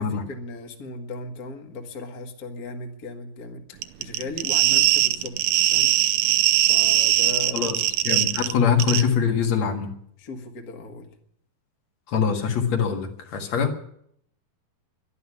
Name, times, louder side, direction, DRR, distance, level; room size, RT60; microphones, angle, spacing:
voice 1, 0.0-6.0 6.7-7.7 10.2-11.1 13.6-13.8, left 3 dB, 70° left, 3 dB, 0.8 m, -37 dB
sound 1, 3.8-8.5 8.8-9.0, right 14 dB, 75° right, 2.0 m, -20 dB
voice 2, 7.5-9.9 12.1-13.7, left 7 dB, 50° left, 3 dB, 2.6 m, -23 dB
12.0 x 11.5 x 9.9 m, 0.68 s
omnidirectional pair, 4.4 m